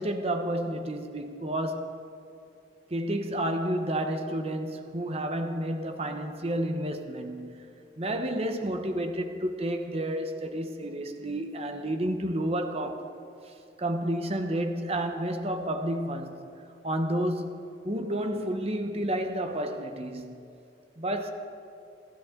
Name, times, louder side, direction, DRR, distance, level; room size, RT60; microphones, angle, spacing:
voice 1, 0.0-1.8 2.9-7.7 8.0-13.1 13.8-16.4 16.8-17.5 17.8-20.4 21.0-21.3, right 1 dB, 35° right, 6 dB, 0.9 m, -30 dB
29.5 x 11.5 x 3.8 m, 2.5 s
head